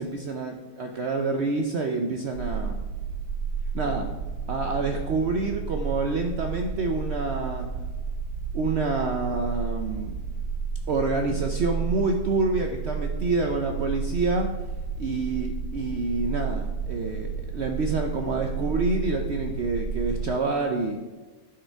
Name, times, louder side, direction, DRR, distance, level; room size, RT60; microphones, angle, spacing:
voice 1, 0.0-2.8 3.7-4.1 4.5-7.7 8.5-10.1 10.9-14.5 15.0-21.0, right 3 dB, 60° right, 4 dB, 0.7 m, -27 dB
sound 1, 2.3-20.3, right 5 dB, 85° right, 1.5 m, -32 dB
11.5 x 4.8 x 4.5 m, 1.3 s
omnidirectional pair, 1.7 m